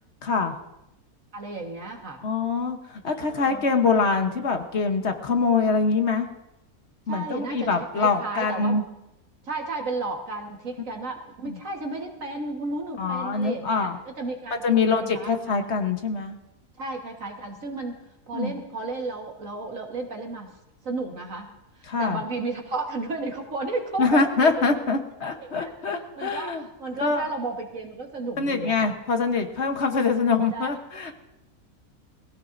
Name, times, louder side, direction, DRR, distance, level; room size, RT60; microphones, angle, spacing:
voice 1, 0.2-0.5 2.2-6.3 7.1-8.8 11.5-11.6 13.0-14.0 14.6-16.4 18.3-18.5 21.9-22.2 24.0-26.6 27.0-27.2 28.4-31.1, left 4 dB, 50° left, 6 dB, 1.3 m, -24 dB
voice 2, 1.3-2.2 3.1-3.6 7.1-8.8 9.4-15.7 16.8-18.0 18.3-20.6 20.8-21.5 21.8-24.5 25.4-28.9 30.5-30.8, right 3 dB, 60° right, 2 dB, 1.9 m, -33 dB
21.0 x 16.0 x 2.6 m, 0.91 s
omnidirectional pair, 1.6 m